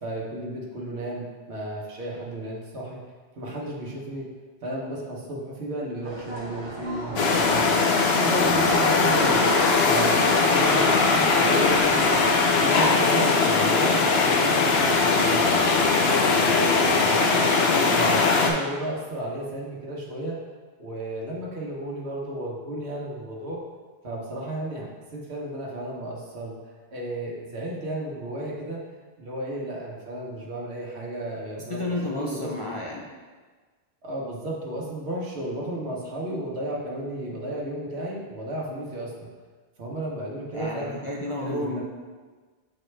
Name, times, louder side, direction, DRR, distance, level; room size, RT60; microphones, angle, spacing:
voice 1, 0.0-3.0 3.4-4.2 4.6-7.8 8.2-9.4 9.8-12.2 12.6-15.5 16.0-17.5 17.9-20.4 20.8-23.6 24.0-26.6 26.9-28.8 29.2-32.5 34.0-39.3 39.8-40.9 41.4-41.8, right 1 dB, 85° right, -3 dB, 1.3 m, -33 dB
sound 1, 6.0-13.0, equal, 25° right, 1.3 m, -37 dB
sound 2, 7.2-18.5, left 4 dB, 75° left, 0.9 m, -20 dB
voice 2, 31.7-33.0 40.5-41.8, left 1 dB, 40° left, -4 dB, 0.6 m, -31 dB
6.7 x 4.3 x 3.3 m, 1.4 s
omnidirectional pair, 1.1 m